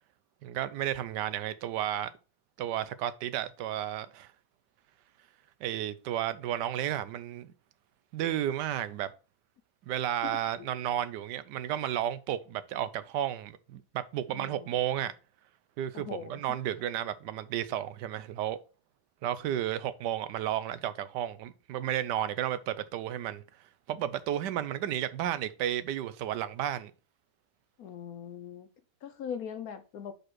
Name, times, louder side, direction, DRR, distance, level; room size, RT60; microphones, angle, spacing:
voice 1, 0.4-2.1 2.6-4.3 5.6-7.5 8.1-9.1 9.9-15.1 15.8-18.6 19.2-23.4 23.9-26.9, right 11 dB, 85° right, 1.2 m, -32 dB
voice 2, 10.2-10.7 14.3-15.1 15.9-16.6 27.8-28.7 29.0-30.1, left 8 dB, 65° left, 1.1 m, -41 dB
5.3 x 4.2 x 6.0 m
omnidirectional pair, 1.8 m